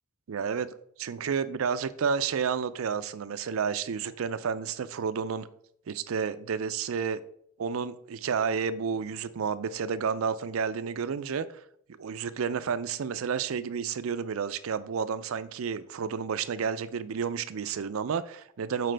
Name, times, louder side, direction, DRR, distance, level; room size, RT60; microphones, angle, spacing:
voice 1, 0.3-0.7 1.0-5.5 5.9-7.2 7.6-11.5 12.0-18.9, right 6 dB, 85° right, 0.4 m, -31 dB
7.6 x 5.0 x 3.3 m
head